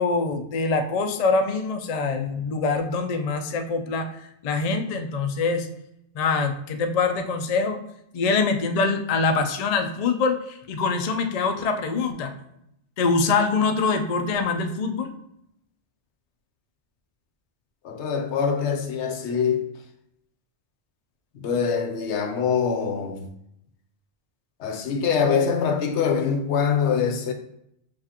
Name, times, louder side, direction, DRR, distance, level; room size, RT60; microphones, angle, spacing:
voice 1, 0.0-5.7 6.1-7.8 8.1-12.3 13.0-15.1, left 4 dB, 50° left, 0.4 m, -24 dB
voice 2, 17.8-19.6 21.4-23.3 24.6-27.3, left 6 dB, 80° left, 0.9 m, -24 dB
6.9 x 2.4 x 2.9 m
omnidirectional pair, 1.2 m